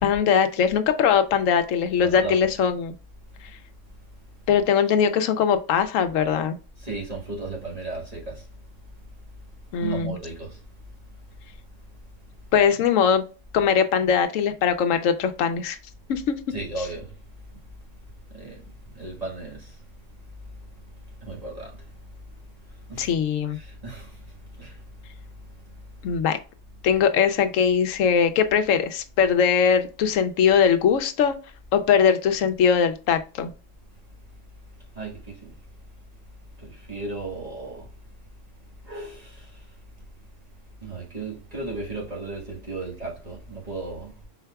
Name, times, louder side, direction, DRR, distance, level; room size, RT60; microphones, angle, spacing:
voice 1, 0.0-2.9 4.5-6.6 9.7-10.2 12.5-13.2 13.5-15.8 16.1-16.4 23.0-23.6 26.0-26.4 26.8-31.3 31.7-33.5, left 7 dB, 85° left, 1.0 m, -21 dB
voice 2, 2.0-2.3 6.8-8.5 9.8-10.6 16.5-17.1 18.3-18.6 18.9-19.7 21.2-21.7 22.9-23.1 23.5-24.8 34.9-35.5 36.6-37.9 38.8-39.5 40.8-44.2, right 3 dB, 30° right, 1.5 m, -35 dB
5.6 x 4.1 x 2.3 m
omnidirectional pair, 1.3 m